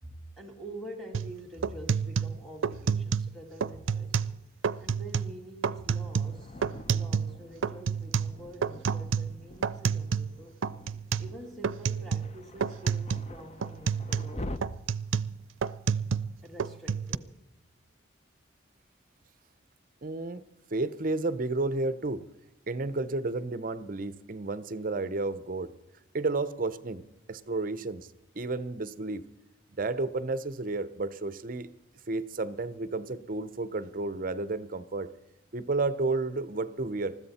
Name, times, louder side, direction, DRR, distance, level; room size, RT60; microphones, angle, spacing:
voice 1, 0.0-4.3 4.8-6.6 6.9-10.5 11.2-14.6 16.4-17.3, right 1 dB, ahead, 2 dB, 2.2 m, -46 dB
sound 1, 1.1-1.3 1.6-3.3 3.6-4.4 4.6-5.3 5.6-7.4 7.6-10.4 10.6-11.3 11.6-12.4 12.6-13.3 13.6-16.3 16.6-17.2, right 6 dB, 85° right, 0.5 m, -29 dB
Thunder, 5.9-14.6, left 1 dB, 35° left, 0.6 m, -46 dB
voice 2, 20.0-20.4 20.7-22.2 22.7-25.7 26.1-28.1 28.4-29.3 29.8-31.7 32.1-35.1 35.5-37.2, right 3 dB, 45° right, 15 dB, 0.7 m, -32 dB
20.5 x 14.0 x 4.2 m, 0.99 s
head